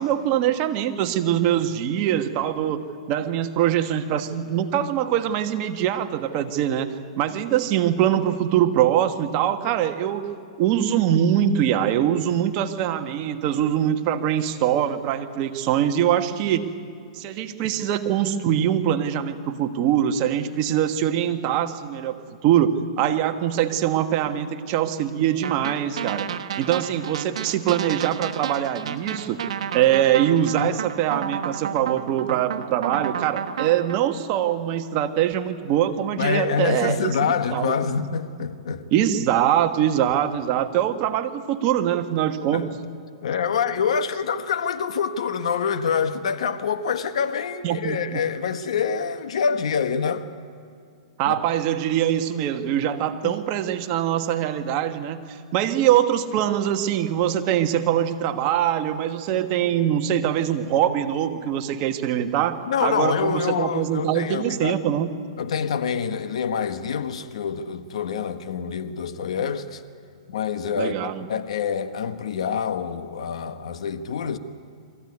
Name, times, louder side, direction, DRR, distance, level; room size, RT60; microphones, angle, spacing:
voice 1, 0.0-10.3 10.6-16.6 17.1-26.3 26.6-29.4 29.7-37.8 38.9-42.7 47.6-48.2 51.2-65.1 70.8-71.3, right 10 dB, 40° right, 1.4 m, -23 dB
sound 1, 25.4-34.0, right 8 dB, 70° right, 1.3 m, -31 dB
voice 2, 36.2-39.0 42.5-42.6 43.2-50.3 51.2-51.4 53.2-53.4 62.7-64.8 65.4-69.8 70.3-74.4, left 6 dB, 75° left, 1.3 m, -26 dB
23.0 x 15.0 x 9.6 m
hypercardioid pair, 130°, 3 cm